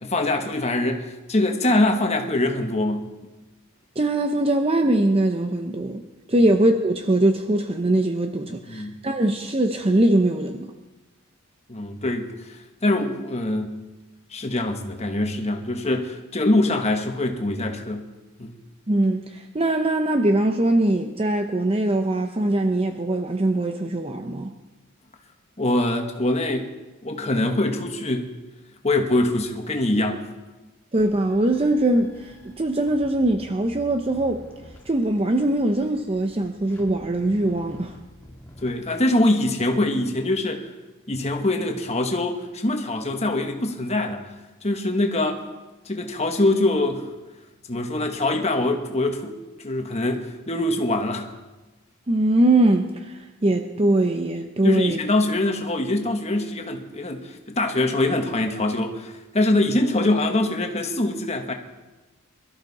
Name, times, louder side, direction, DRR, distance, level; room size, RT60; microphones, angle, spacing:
voice 1, 0.0-3.0 6.4-6.5 8.7-8.9 11.7-12.5 12.8-13.7 14.3-18.0 18.4-18.5 25.6-26.7 27.0-28.3 28.8-30.2 38.6-40.7 41.1-44.2 44.6-45.4 45.8-47.0 47.7-51.3 54.6-61.5, left 2 dB, 30° left, 4 dB, 1.5 m, -23 dB
voice 2, 4.0-6.0 6.3-10.7 18.9-24.5 30.9-34.4 34.9-37.9 52.1-55.0, right 1 dB, 25° right, 5 dB, 0.7 m, -22 dB
sound 1, 31.0-38.7, equal, 10° left, 2.7 m, -48 dB
22.5 x 13.5 x 4.2 m, 1.1 s
head